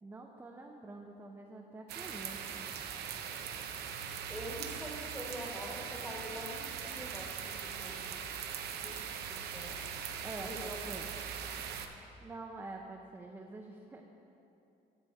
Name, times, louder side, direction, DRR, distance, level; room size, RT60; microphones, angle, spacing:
voice 1, 0.0-2.7 10.2-11.1 12.2-14.0, right 2 dB, 15° right, 1 dB, 0.6 m, -46 dB
sound 1, 1.9-11.9, right 7 dB, 70° right, 0.7 m, -41 dB
voice 2, 4.3-8.0 8.8-9.0 9.3-9.8 10.4-10.8 11.1-11.6, equal, 5° left, -1 dB, 1.4 m, -45 dB
10.0 x 6.8 x 4.6 m, 2.8 s
cardioid pair, 110°, 17 cm